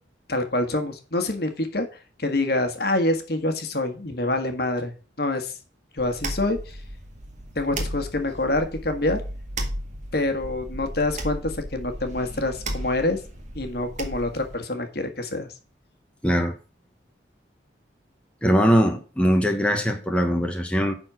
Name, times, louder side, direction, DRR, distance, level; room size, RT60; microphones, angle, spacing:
voice 1, 0.3-1.9 2.2-4.9 5.2-5.5 5.9-6.8 7.5-9.2 10.1-13.2 13.5-15.5, left 2 dB, 55° left, 1.6 m, -26 dB
sound 1, 6.0-14.6, right 1 dB, 40° right, 1.7 m, -35 dB
voice 2, 16.2-16.5 18.4-20.9, equal, 5° left, 1.1 m, -21 dB
10.5 x 4.4 x 6.2 m
head